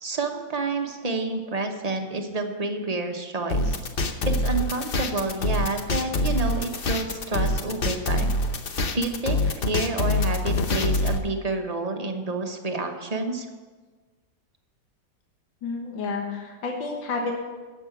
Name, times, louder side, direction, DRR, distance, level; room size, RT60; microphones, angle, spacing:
voice 1, 0.0-3.8 4.2-8.4 8.9-13.5, right 2 dB, 30° right, 4 dB, 0.8 m, -29 dB
sound 1, 3.5-11.2, left 2 dB, 50° left, 0.6 m, -25 dB
voice 2, 15.6-17.4, left 4 dB, 80° left, 1 dB, 2.1 m, -30 dB
10.5 x 7.5 x 8.2 m, 1.4 s
omnidirectional pair, 2.0 m